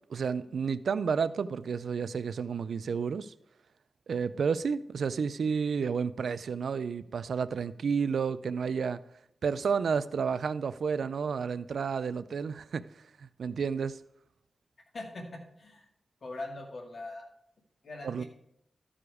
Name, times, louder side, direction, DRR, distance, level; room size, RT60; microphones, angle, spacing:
voice 1, 0.1-3.3 4.1-9.0 9.4-12.9 13.2-14.0 18.0-18.2, right 6 dB, 90° right, 0.4 m, -31 dB
voice 2, 14.9-15.9 16.2-17.3 17.8-18.2, left 2 dB, 60° left, 2.0 m, -41 dB
13.0 x 4.9 x 4.8 m
wide cardioid pair, 100°, 0 cm